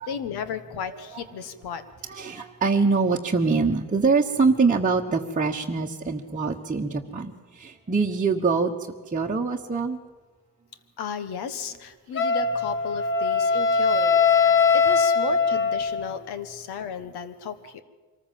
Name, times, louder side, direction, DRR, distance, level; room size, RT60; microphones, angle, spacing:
voice 1, 0.1-1.8 11.0-17.8, left 7 dB, 80° left, 12 dB, 1.5 m, -34 dB
voice 2, 2.0-8.7 9.1-10.0, right 4 dB, 20° right, -1 dB, 1.2 m, -24 dB
Wind instrument woodwind instrument, 12.2-16.1, left 5 dB, 30° left, 1.4 m, -21 dB
24.0 x 14.5 x 7.6 m, 1.4 s
cardioid pair, 90°, 38 cm